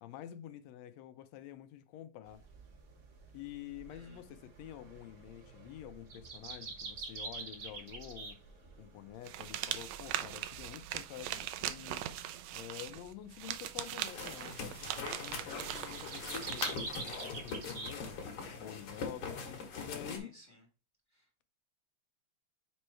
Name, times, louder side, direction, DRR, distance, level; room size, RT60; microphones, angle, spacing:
voice 1, 0.0-2.4 3.3-8.4 8.8-12.0 12.5-20.4, left 12 dB, 80° left, 1.6 m, -48 dB
sound 1, 2.3-18.2, right 4 dB, 50° right, 1.2 m, -48 dB
voice 2, 3.9-4.2 20.2-20.6 21.1-21.2, equal, 30° left, 1.3 m, -59 dB
sound 2, 9.2-16.8, right 12 dB, 80° right, 1.7 m, -40 dB
sound 3, 14.1-20.2, left 4 dB, 55° left, 2.1 m, -42 dB
5.3 x 4.7 x 4.3 m
omnidirectional pair, 3.4 m